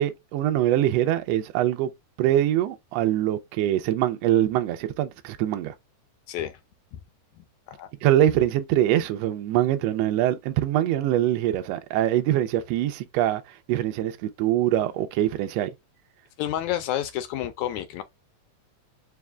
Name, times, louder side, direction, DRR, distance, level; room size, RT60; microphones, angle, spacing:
voice 1, 0.0-1.9 2.2-5.7 8.0-13.4 13.7-15.7, right 12 dB, 85° right, 1.5 m, -23 dB
voice 2, 6.3-6.6 6.9-7.0 7.4-7.9 16.4-18.0, left 12 dB, 75° left, 1.8 m, -30 dB
4.9 x 2.2 x 3.5 m
omnidirectional pair, 3.6 m